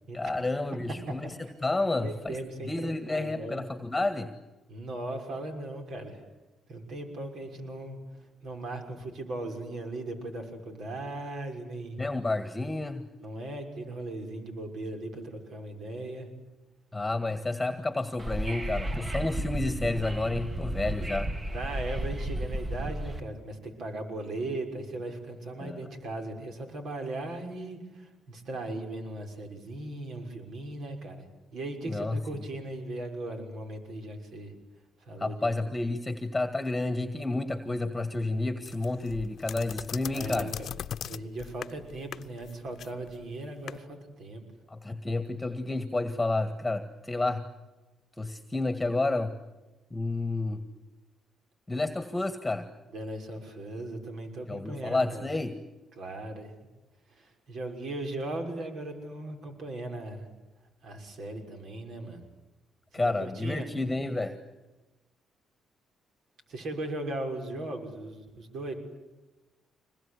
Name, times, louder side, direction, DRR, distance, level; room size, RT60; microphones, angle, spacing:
voice 1, 0.1-2.4 2.7-4.3 12.0-13.1 16.9-21.4 25.6-25.8 31.9-32.2 35.2-40.5 44.7-47.4 48.2-49.3 49.9-50.6 51.7-52.7 54.5-55.5 62.9-64.4, left 2 dB, 15° left, 9 dB, 1.7 m, -30 dB
voice 2, 2.0-3.6 4.7-6.2 6.7-12.0 13.2-16.3 21.5-34.5 35.0-35.5 40.0-40.7 41.0-44.4 52.9-55.2 56.0-56.5 57.1-60.3 60.8-62.2 62.9-63.7 66.5-68.7, right 2 dB, 65° right, 4 dB, 6.2 m, -38 dB
Wind / Subway metro underground, 18.2-23.2, right 1 dB, 25° right, 1.7 m, -33 dB
sound 1, 38.6-43.8, left 9 dB, 65° left, 0.8 m, -40 dB
26.0 x 22.0 x 9.9 m, 1.1 s
cardioid pair, 90°, 0 cm